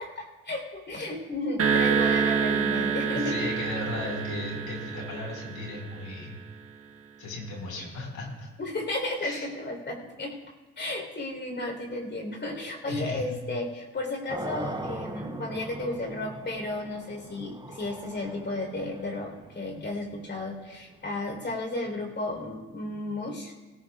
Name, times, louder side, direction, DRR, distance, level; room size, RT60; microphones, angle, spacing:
voice 1, 0.0-3.5 8.6-10.4 10.8-23.5, left 2 dB, 35° left, 1 dB, 3.9 m, -33 dB
sound 1, 1.6-6.1, right 6 dB, 50° right, 1.3 m, -27 dB
voice 2, 3.1-6.4 7.2-8.5 9.2-9.5 12.9-13.3, left 2 dB, 80° left, -1 dB, 5.0 m, -36 dB
sound 2, 14.3-21.2, right 2 dB, 15° right, 0.9 m, -40 dB
18.0 x 17.0 x 2.4 m, 1.2 s
cardioid pair, 90°, 30 cm